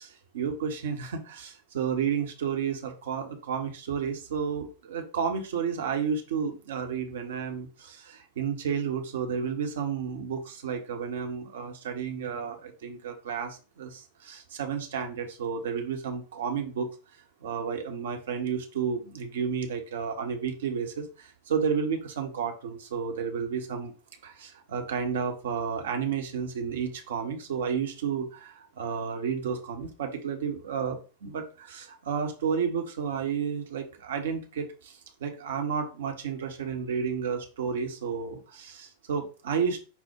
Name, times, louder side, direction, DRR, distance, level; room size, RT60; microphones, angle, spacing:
voice 1, 0.0-16.9 17.4-23.9 24.2-39.9, right 6 dB, 60° right, 4 dB, 0.8 m, -32 dB
5.6 x 2.1 x 4.3 m, 0.35 s
figure-of-eight pair, 90°, 0 cm